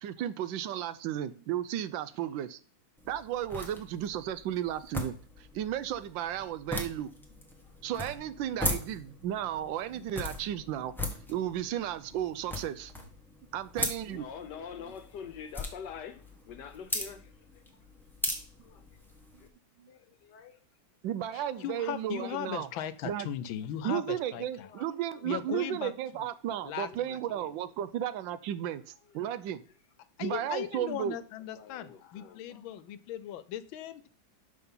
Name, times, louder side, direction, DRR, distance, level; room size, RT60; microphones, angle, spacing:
voice 1, 0.0-2.6 3.0-5.2 5.5-7.1 7.8-10.9 11.3-12.9 13.5-14.2 19.8-19.9 21.0-22.7 23.0-23.3 23.8-29.6 30.2-31.2, right 11 dB, 80° right, 1.3 m, -34 dB
sound 1, 3.0-19.5, left 1 dB, ahead, 1.0 m, -39 dB
voice 2, 14.1-17.6 18.6-18.8 19.4-19.5 19.9-20.6 21.3-21.6 24.6-25.3 25.5-25.7 26.9-27.7 29.1-29.4 30.4-30.8 31.5-32.8, left 7 dB, 65° left, 1.5 m, -47 dB
voice 3, 21.3-24.7 25.2-25.9 26.6-27.2 30.2-34.1, left 10 dB, 85° left, 1.5 m, -38 dB
5.9 x 5.6 x 5.5 m
omnidirectional pair, 2.1 m